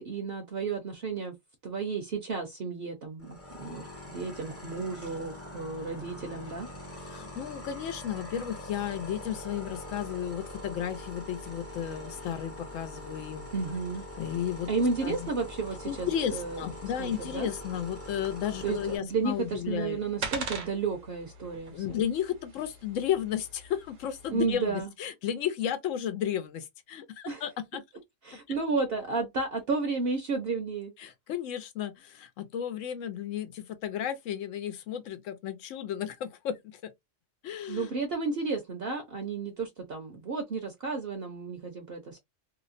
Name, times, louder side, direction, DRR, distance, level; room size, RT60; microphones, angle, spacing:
voice 1, 0.0-1.3 1.6-6.7 13.5-14.0 14.7-16.6 17.0-17.5 18.6-22.0 24.3-24.9 27.3-27.4 28.2-30.9 37.7-42.2, right 4 dB, 55° right, 0.8 m, -32 dB
sound 1, 3.2-19.0, left 1 dB, 15° left, 0.5 m, -43 dB
voice 2, 7.0-13.5 14.2-14.7 15.0-15.3 15.8-20.0 21.7-27.8 31.0-36.9 37.4-38.0, left 9 dB, 75° left, 0.9 m, -33 dB
sound 2, 19.1-24.6, right 4 dB, 75° right, 1.1 m, -42 dB
2.8 x 2.0 x 2.4 m
omnidirectional pair, 1.3 m